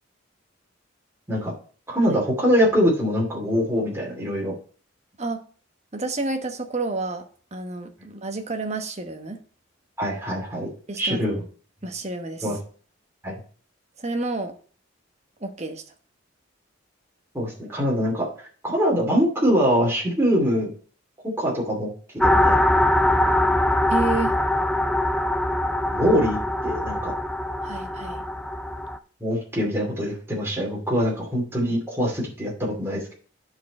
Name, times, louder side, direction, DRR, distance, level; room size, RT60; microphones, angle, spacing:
voice 1, 1.9-4.5 10.0-10.7 11.0-11.4 12.4-12.6 13.2-13.4 17.3-20.7 21.4-21.9 22.2-22.6 25.9-27.1 29.2-33.1, equal, 10° right, -4 dB, 2.5 m, -23 dB
voice 2, 5.9-9.4 10.9-11.4 11.8-12.5 14.0-14.5 15.4-15.8 23.9-24.3 27.6-28.2, right 3 dB, 35° right, 6 dB, 1.1 m, -30 dB
sound 1, 22.2-29.0, left 1 dB, 5° left, 0.5 m, -22 dB
10.0 x 4.6 x 4.2 m, 0.42 s
head